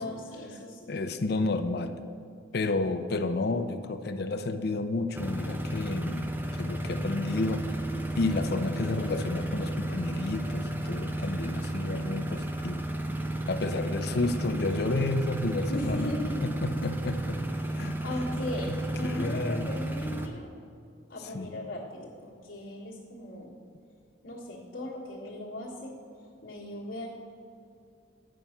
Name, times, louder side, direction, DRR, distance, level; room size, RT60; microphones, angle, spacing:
voice 1, 0.0-0.8 15.7-16.5 17.6-18.7 18.9-20.5 21.1-23.5 24.2-25.9 26.4-27.1, left 1 dB, 80° left, -7 dB, 1.5 m, -37 dB
voice 2, 0.9-1.9 2.5-7.6 8.2-12.9 13.5-16.1 16.4-17.4 17.8-18.0 18.7-19.8 21.3-21.5, left 2 dB, 55° left, 9 dB, 0.5 m, -31 dB
sound 1, 5.1-20.3, right 1 dB, 10° right, 0.5 m, -33 dB
9.2 x 5.4 x 5.7 m, 2.4 s
head